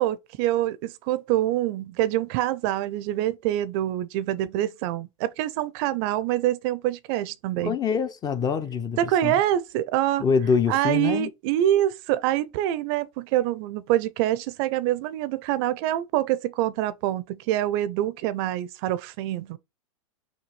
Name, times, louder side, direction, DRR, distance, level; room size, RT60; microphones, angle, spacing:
voice 1, 0.0-7.8 9.0-10.2 10.7-19.6, right 13 dB, 50° right, 0.5 m, -25 dB
voice 2, 7.6-9.3 10.2-11.3, left 6 dB, 20° left, 0.5 m, -25 dB
6.0 x 2.3 x 3.2 m
hypercardioid pair, 105°, 17 cm